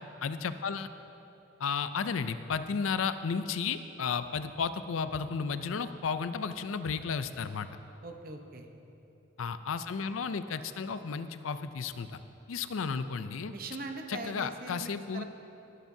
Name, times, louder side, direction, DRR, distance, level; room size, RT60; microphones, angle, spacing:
voice 1, 0.2-0.9 1.6-7.7 9.4-12.2 12.5-13.5 14.1-15.2, left 5 dB, 85° left, 11 dB, 0.5 m, -33 dB
voice 2, 8.0-8.7 13.5-15.2, right 2 dB, 45° right, 4 dB, 0.9 m, -41 dB
18.0 x 12.0 x 2.7 m, 3.0 s
head